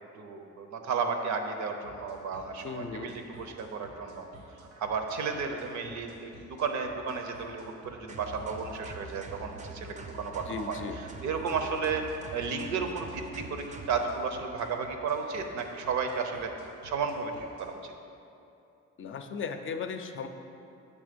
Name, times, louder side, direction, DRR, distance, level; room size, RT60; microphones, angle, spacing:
voice 1, 0.2-12.0 12.3-16.5 16.8-17.9, right 5 dB, 70° right, 5 dB, 0.7 m, -33 dB
sound 1, 1.8-17.7, right 1 dB, 90° right, 1.1 m, -53 dB
voice 2, 2.6-3.2 10.5-11.0 19.0-20.3, left 5 dB, 45° left, 7 dB, 0.5 m, -36 dB
sound 2, 8.1-14.1, right 3 dB, 25° right, 0.5 m, -44 dB
7.4 x 3.6 x 5.1 m, 2.7 s
cardioid pair, 90°, 30 cm